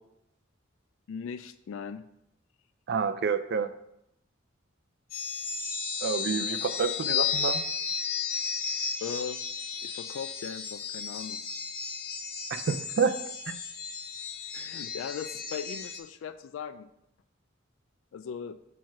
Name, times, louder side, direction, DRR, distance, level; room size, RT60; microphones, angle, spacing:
voice 1, 1.1-2.0 9.0-9.4 9.8-11.4 14.5-16.9 18.1-18.6, left 7 dB, 80° left, 11 dB, 0.3 m, -38 dB
voice 2, 2.9-3.7 6.0-7.6 12.5-13.1 13.5-13.6, right 5 dB, 60° right, 11 dB, 0.4 m, -28 dB
sound 1, 5.1-16.0, left 6 dB, 50° left, 0.8 m, -34 dB
4.6 x 4.5 x 5.8 m, 0.80 s
head